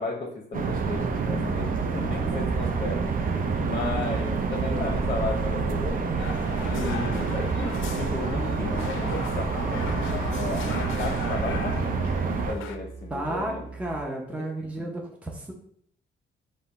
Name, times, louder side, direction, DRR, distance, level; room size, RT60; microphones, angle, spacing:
voice 1, 0.0-6.1 6.6-13.7 14.3-14.5 14.8-15.0, left 3 dB, 30° left, 1 dB, 0.8 m, -34 dB
sound 1, 0.5-12.5, right 4 dB, 45° right, 0.6 m, -27 dB
sound 2, 6.2-12.8, left 8 dB, 80° left, 0.5 m, -39 dB
voice 2, 6.7-7.1 13.1-15.5, right 1 dB, 5° right, 0 dB, 0.6 m, -33 dB
sound 3, 9.8-11.8 12.1-14.0, left 1 dB, 65° right, 1.2 m, -42 dB
5.1 x 2.2 x 4.0 m, 0.66 s
cardioid pair, 90°, 20 cm